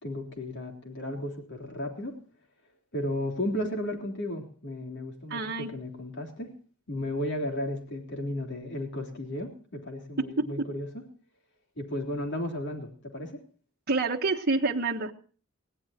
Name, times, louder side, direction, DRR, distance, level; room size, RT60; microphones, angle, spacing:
voice 1, 0.0-2.2 2.9-6.5 6.9-11.0 11.8-13.4, left 1 dB, 55° left, 3 dB, 3.5 m, -34 dB
voice 2, 5.3-5.7 10.2-10.5 13.9-15.1, right 3 dB, 50° right, 2 dB, 1.2 m, -27 dB
21.0 x 17.0 x 2.8 m, 0.40 s
head